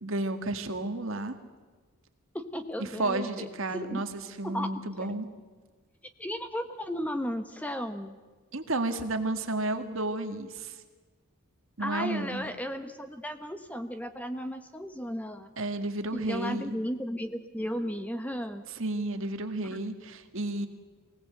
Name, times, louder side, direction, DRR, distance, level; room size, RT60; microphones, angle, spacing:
voice 1, 0.0-1.3 3.0-5.3 8.5-10.8 11.8-12.4 15.6-16.8 18.8-20.7, right 2 dB, 60° right, 6 dB, 1.8 m, -32 dB
voice 2, 2.3-4.0 4.4-5.1 6.2-8.2 11.8-15.5 16.1-18.6 19.7-19.8, equal, 5° left, 8 dB, 1.0 m, -35 dB
23.5 x 17.5 x 7.8 m, 1.4 s
head